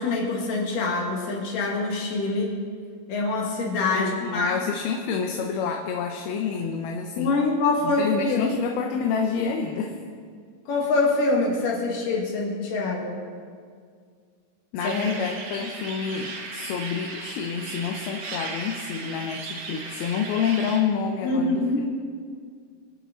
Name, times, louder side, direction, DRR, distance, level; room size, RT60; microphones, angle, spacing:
voice 1, 0.0-2.5 3.1-4.6 7.2-8.5 10.7-13.2 14.8-15.0 21.2-21.8, left 3 dB, 60° left, -2 dB, 3.6 m, -25 dB
voice 2, 3.9-7.3 7.8-10.0 14.7-21.6, left 6 dB, 75° left, 3 dB, 2.6 m, -28 dB
sound 1, 14.8-20.8, right 3 dB, 55° right, 2.5 m, -36 dB
26.0 x 9.0 x 4.1 m, 2.1 s
omnidirectional pair, 4.7 m